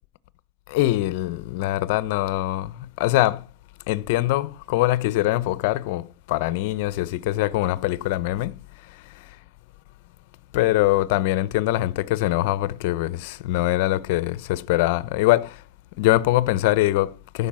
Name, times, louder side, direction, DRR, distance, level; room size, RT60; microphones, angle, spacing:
voice 1, 0.7-3.4 3.9-8.5 10.5-15.5 16.0-17.5, left 16 dB, 60° left, 0.7 m, -23 dB
14.5 x 5.5 x 7.5 m
supercardioid pair, 150°, 0 cm